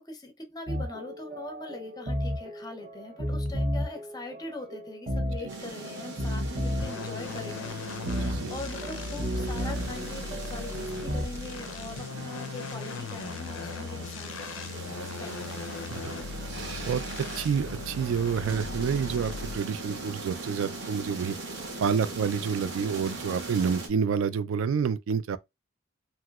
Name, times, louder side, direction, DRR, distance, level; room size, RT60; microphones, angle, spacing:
voice 1, 0.0-7.7 8.0-14.3 14.9-15.8, left 2 dB, 20° left, 0.6 m, -42 dB
sound 1, 0.7-11.3, equal, 35° right, 0.6 m, -33 dB
sound 2, 5.5-23.9, right 2 dB, 60° right, 0.8 m, -40 dB
sound 3, 6.8-19.8, left 5 dB, 70° left, 0.4 m, -39 dB
voice 2, 8.1-8.5 15.9-16.2 16.9-17.0 17.4-21.3 21.8-25.4, right 6 dB, 75° right, 0.3 m, -28 dB
3.0 x 2.9 x 2.3 m
head